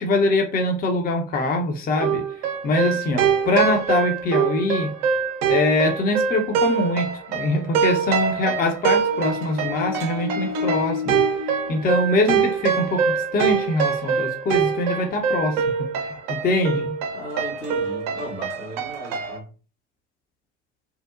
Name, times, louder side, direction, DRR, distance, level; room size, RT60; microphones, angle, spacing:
voice 1, 0.0-2.2 2.6-4.9 5.5-11.2 11.7-15.6 16.3-17.0, left 2 dB, 25° left, 0.6 m, -23 dB
sound 1, 2.0-19.4, right 6 dB, 60° right, 0.5 m, -24 dB
voice 2, 17.1-19.5, equal, 85° left, 1.2 m, -35 dB
2.8 x 2.1 x 2.3 m
figure-of-eight pair, 60°, 34 cm